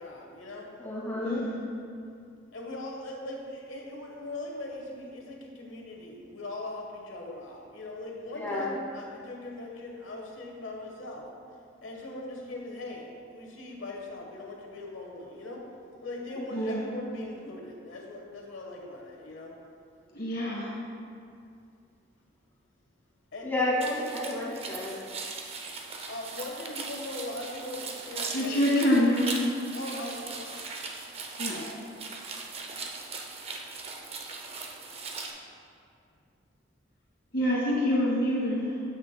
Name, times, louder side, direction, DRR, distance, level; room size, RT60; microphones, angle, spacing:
voice 1, 0.0-0.7 1.1-1.2 2.5-11.3 11.8-15.6 16.0-19.5 23.3-24.1 26.1-29.1 29.7-30.7, left 2 dB, 85° left, 0 dB, 1.2 m, -40 dB
voice 2, 0.8-1.4 8.3-8.8 16.3-16.8 23.4-24.9, left 1 dB, 10° left, -7 dB, 1.6 m, -31 dB
voice 3, 16.5-16.8 20.1-20.7 28.3-29.3 31.4-31.6 37.3-38.9, left 1 dB, 50° left, -5 dB, 1.9 m, -26 dB
sound 1, 23.8-35.3, right 4 dB, 30° right, 0.5 m, -39 dB
9.5 x 8.1 x 2.2 m, 2.4 s
head